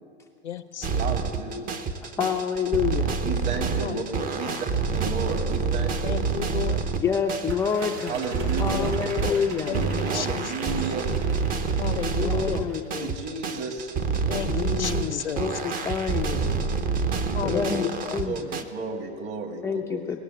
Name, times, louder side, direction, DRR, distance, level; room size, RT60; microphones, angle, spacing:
voice 1, 0.4-1.1 3.8-4.0 4.4-4.6 6.0-6.8 8.7-8.9 9.2-9.8 10.1-10.7 11.8-12.7 14.3-15.4 17.3-18.2, left 9 dB, 80° left, 13 dB, 0.7 m, -33 dB
sound 1, 0.8-18.6, right 5 dB, 25° right, 0.8 m, -28 dB
voice 2, 1.0-1.7 3.2-4.7 4.9-6.2 8.1-8.9 9.7-11.1 13.0-13.9 18.2-20.1, right 4 dB, 45° right, 3 dB, 2.4 m, -33 dB
voice 3, 2.2-3.2 7.0-8.3 8.6-9.8 12.2-13.3 13.5-13.6 14.5-17.1 17.4-18.4 19.6-20.2, left 6 dB, 10° left, 1 dB, 0.4 m, -28 dB
sound 2, 7.5-13.0, right 3 dB, 70° right, 1.4 m, -41 dB
18.0 x 7.0 x 9.2 m, 2.3 s
figure-of-eight pair, 90°, 33 cm